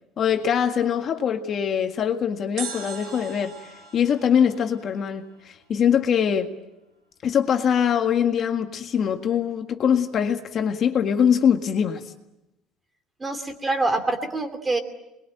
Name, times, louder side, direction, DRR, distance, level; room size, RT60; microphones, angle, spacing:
voice 1, 0.2-6.5 7.2-12.0, left 8 dB, 40° left, 1.8 m, -23 dB
sound 1, 2.6-5.7 5.9-6.0, right 7 dB, 60° right, 5.8 m, -40 dB
voice 2, 13.2-14.8, right 2 dB, 15° right, 2.7 m, -25 dB
27.5 x 21.5 x 9.0 m
cardioid pair, 160°, 0 cm